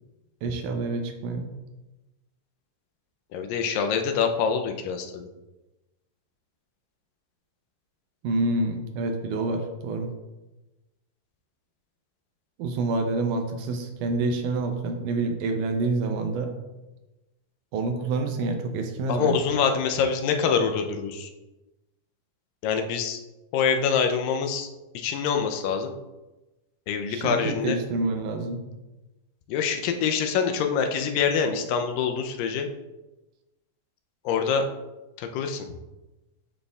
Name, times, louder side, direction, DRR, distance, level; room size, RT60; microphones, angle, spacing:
voice 1, 0.4-1.5 8.2-10.1 12.6-16.5 17.7-19.4 27.1-28.6, right 3 dB, 80° right, 5 dB, 2.0 m, -27 dB
voice 2, 3.3-5.3 19.1-21.3 22.6-23.2 23.5-24.7 24.9-25.9 26.9-27.8 29.5-32.7 34.3-34.7 35.2-35.8, left 6 dB, 90° left, 5 dB, 2.3 m, -25 dB
11.0 x 4.1 x 2.3 m, 1.0 s
omnidirectional pair, 3.8 m